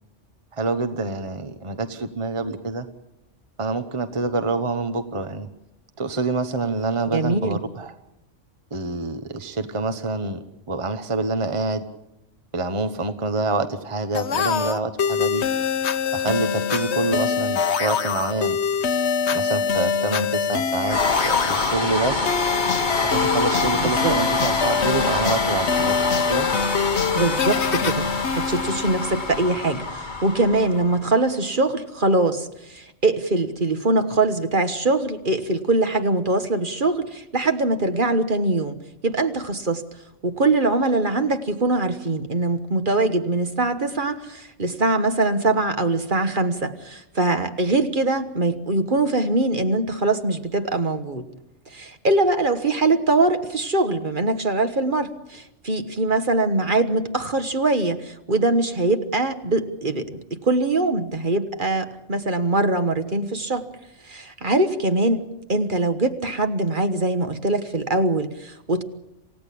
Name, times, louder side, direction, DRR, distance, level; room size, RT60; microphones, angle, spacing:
voice 1, 0.5-2.9 3.6-5.5 6.0-7.9 8.7-11.8 12.5-15.4 16.1-18.6 19.3-22.3 23.0-26.5, right 3 dB, 25° right, 9 dB, 1.2 m, -26 dB
voice 2, 7.1-7.6 23.8-24.1 27.1-28.1 28.4-38.8 39.0-39.8 40.2-51.3 51.7-63.7 64.0-65.2 65.5-68.8, right 2 dB, 45° right, 8 dB, 1.5 m, -22 dB
sound 1, 14.1-29.6, left 6 dB, 65° left, 1.3 m, -24 dB
sound 2, 20.8-31.1, left 3 dB, 40° left, 2.2 m, -26 dB
28.0 x 16.5 x 8.5 m, 0.91 s
omnidirectional pair, 1.3 m